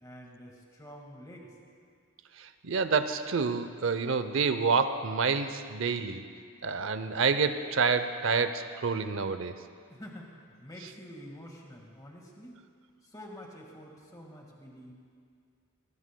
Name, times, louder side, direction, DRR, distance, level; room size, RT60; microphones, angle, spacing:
voice 1, 0.0-1.5 9.9-12.6 13.0-14.9, equal, 15° left, 0 dB, 1.8 m, -48 dB
voice 2, 2.4-6.2 6.6-9.5, right 5 dB, 60° right, 10 dB, 0.6 m, -28 dB
20.0 x 20.0 x 2.2 m, 2.2 s
head